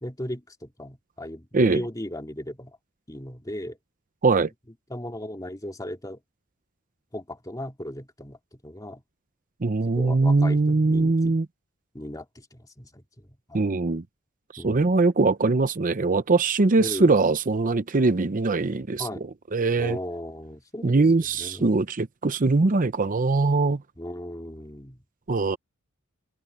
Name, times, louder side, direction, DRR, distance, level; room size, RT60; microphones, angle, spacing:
voice 1, 0.0-2.8 3.1-3.8 4.9-6.2 7.1-9.0 9.9-11.4 11.9-13.6 14.6-15.0 16.8-17.1 19.0-19.3 19.8-21.8 24.0-25.0, left 1 dB, 15° left, 2.5 m, -37 dB
voice 2, 9.6-11.5 13.5-14.0 14.5-19.1 19.5-20.0 20.8-23.8 25.3-25.6, right 3 dB, 40° right, 0.7 m, -22 dB
head